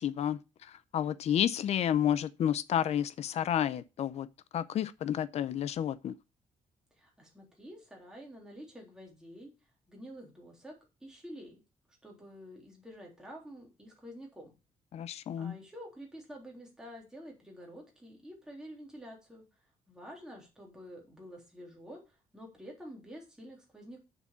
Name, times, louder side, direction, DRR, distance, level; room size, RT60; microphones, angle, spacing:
voice 1, 0.0-4.3 4.5-6.2 14.9-15.5, left 10 dB, 50° left, 0.6 m, -31 dB
voice 2, 6.9-9.5 9.9-10.7 11.0-11.6 12.0-14.5 15.4-19.5 19.9-24.0, equal, 5° right, 3.7 m, -49 dB
7.3 x 6.9 x 6.9 m
cardioid pair, 175°, 14 cm